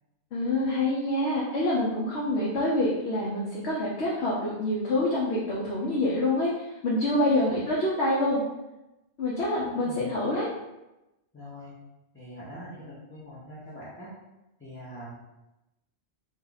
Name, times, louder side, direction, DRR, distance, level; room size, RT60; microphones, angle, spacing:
voice 1, 0.3-8.4 9.2-10.5, left 1 dB, 80° left, -5 dB, 0.9 m, -26 dB
voice 2, 11.3-11.7 12.1-14.1 14.6-15.1, equal, 15° left, -10 dB, 0.6 m, -43 dB
2.8 x 2.4 x 3.8 m, 0.96 s
omnidirectional pair, 1.1 m